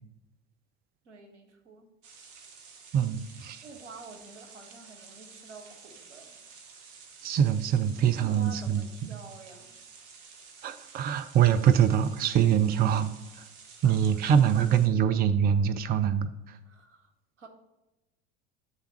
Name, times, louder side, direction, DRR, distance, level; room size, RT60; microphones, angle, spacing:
voice 1, 1.0-1.9 3.6-6.4 8.2-9.8 13.8-14.6 16.7-17.1 17.4-17.5, right 3 dB, 90° right, 3 dB, 1.1 m, -49 dB
sound 1, 2.0-14.9, right 5 dB, 60° right, 1.1 m, -51 dB
voice 2, 2.9-3.6 7.2-8.8 10.6-13.1 13.4-13.5 13.8-16.6, right 9 dB, 30° right, 12 dB, 0.4 m, -24 dB
8.1 x 3.5 x 5.6 m, 0.97 s
hypercardioid pair, 75°, 35 cm